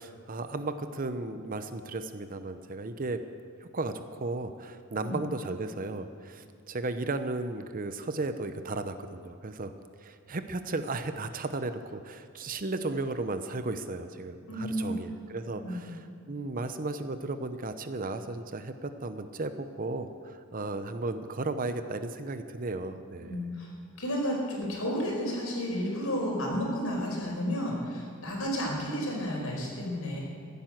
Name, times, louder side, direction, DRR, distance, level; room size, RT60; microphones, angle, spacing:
voice 1, 0.0-3.2 3.6-9.7 10.0-23.4, right 2 dB, 40° right, 9 dB, 0.8 m, -35 dB
voice 2, 14.5-15.0 15.6-15.8 23.2-23.7 24.0-30.2, equal, 80° left, -1 dB, 4.8 m, -32 dB
15.0 x 10.5 x 7.7 m, 2.4 s
head